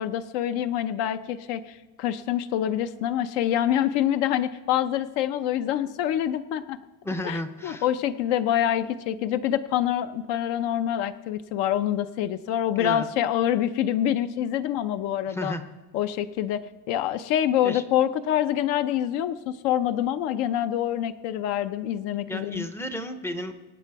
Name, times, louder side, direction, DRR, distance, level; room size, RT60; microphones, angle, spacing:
voice 1, 0.0-6.8 7.2-15.5 15.9-16.6 16.9-22.7, left 11 dB, 70° left, 11 dB, 0.8 m, -26 dB
voice 2, 7.0-7.9 12.8-13.0 15.3-15.7 17.6-17.8 22.3-23.5, left 1 dB, 5° left, 8 dB, 0.4 m, -33 dB
23.5 x 9.1 x 4.7 m, 1.2 s
cardioid pair, 175°, 45 cm